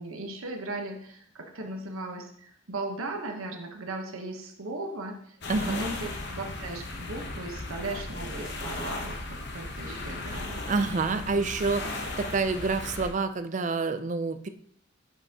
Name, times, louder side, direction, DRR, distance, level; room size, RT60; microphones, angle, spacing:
voice 1, 0.0-11.3, right 2 dB, 90° right, 3 dB, 1.1 m, -37 dB
sound 1, 5.4-13.1, left 2 dB, 55° left, 1.0 m, -36 dB
voice 2, 5.5-5.8 10.7-14.5, right 4 dB, 35° right, 10 dB, 0.4 m, -28 dB
10.0 x 5.6 x 2.9 m, 0.66 s
head